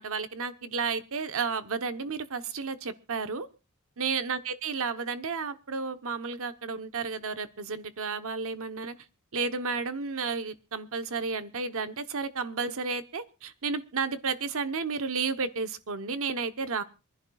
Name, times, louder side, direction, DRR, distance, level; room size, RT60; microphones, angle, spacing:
voice 1, 0.0-3.5 4.0-8.9 9.3-16.8, right 5 dB, 65° right, 11 dB, 1.0 m, -32 dB
26.5 x 11.0 x 2.4 m, 0.30 s
head